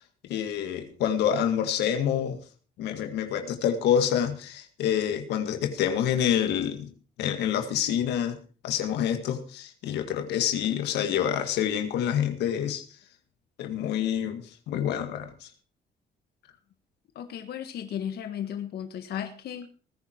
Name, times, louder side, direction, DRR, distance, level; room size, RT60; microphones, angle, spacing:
voice 1, 0.3-2.4 2.8-6.9 7.2-8.4 8.6-12.8 13.6-15.5, left 9 dB, 90° left, 7 dB, 2.0 m, -27 dB
voice 2, 17.2-19.7, left 9 dB, 70° left, 7 dB, 1.7 m, -35 dB
19.5 x 10.0 x 4.6 m, 0.38 s
cardioid pair, 95°, 17 cm